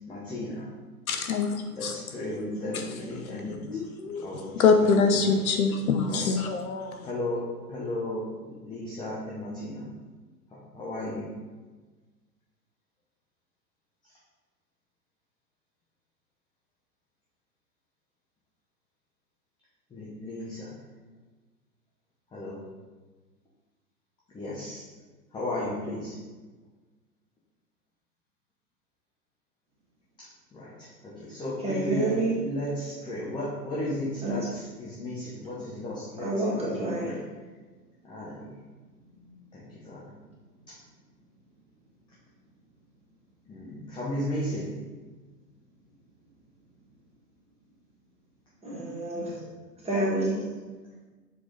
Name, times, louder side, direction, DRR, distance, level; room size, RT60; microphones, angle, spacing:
voice 1, 0.1-0.7 1.7-3.8 4.2-5.4 6.1-6.3 7.0-9.9 10.5-11.3 19.9-20.7 22.3-22.6 24.3-24.9 25.3-26.2 30.5-36.3 36.6-37.2 38.0-38.6 39.5-40.0 43.5-44.7, left 1 dB, 10° left, -6 dB, 0.9 m, -35 dB
voice 2, 1.1-1.9 3.7-4.3 4.6-7.0, left 5 dB, 60° left, 6 dB, 0.8 m, -24 dB
voice 3, 31.6-32.3 34.2-34.3 36.2-37.1 48.6-49.3 49.8-50.4, right 2 dB, 10° right, -5 dB, 1.8 m, -28 dB
6.6 x 4.6 x 3.9 m, 1.3 s
figure-of-eight pair, 115°, 49 cm